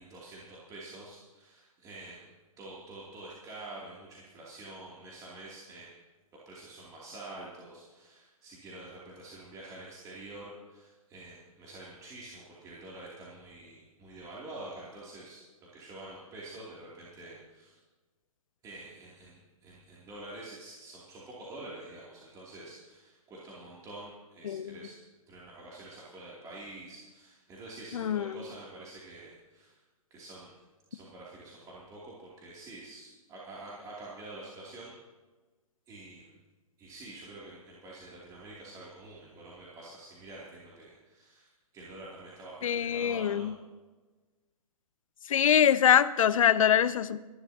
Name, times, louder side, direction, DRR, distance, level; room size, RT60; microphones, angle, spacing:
voice 1, 0.0-6.0 6.4-15.4 15.7-17.8 18.6-24.9 25.3-29.8 30.1-30.6 30.9-34.9 35.9-36.4 36.8-43.5, right 2 dB, 20° right, -6 dB, 2.8 m, -47 dB
voice 2, 24.4-24.8 27.9-28.4 42.6-43.5 45.3-47.2, left 9 dB, 65° left, 15 dB, 0.8 m, -24 dB
26.5 x 11.5 x 2.9 m, 1.3 s
hypercardioid pair, 135°, 19 cm